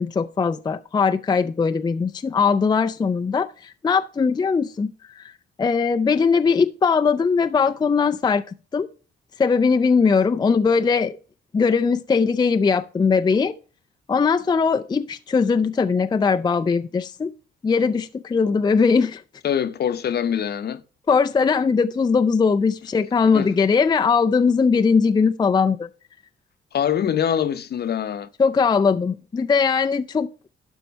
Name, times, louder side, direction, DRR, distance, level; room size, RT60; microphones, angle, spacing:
voice 1, 0.0-5.3 5.6-8.4 8.7-8.9 9.4-11.2 11.5-13.5 14.1-17.3 17.6-19.2 21.1-25.9 28.4-30.3, left 5 dB, 20° left, 0.4 m, -20 dB
voice 2, 19.4-20.8 23.3-23.5 26.7-28.3, left 9 dB, 55° left, 0.8 m, -24 dB
11.5 x 4.5 x 5.2 m
cardioid pair, 90°, 20 cm